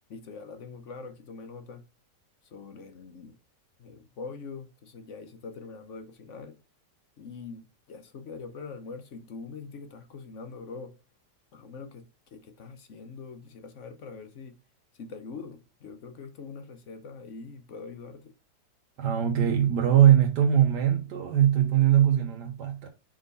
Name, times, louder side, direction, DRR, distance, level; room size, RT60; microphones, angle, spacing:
voice 1, 0.1-1.8 2.4-3.4 3.8-6.6 7.2-11.0 11.5-14.5 14.9-18.3, left 4 dB, 55° left, 1.0 m, -43 dB
voice 2, 19.0-22.9, right 10 dB, 80° right, 1.4 m, -21 dB
5.0 x 3.8 x 5.2 m
omnidirectional pair, 1.8 m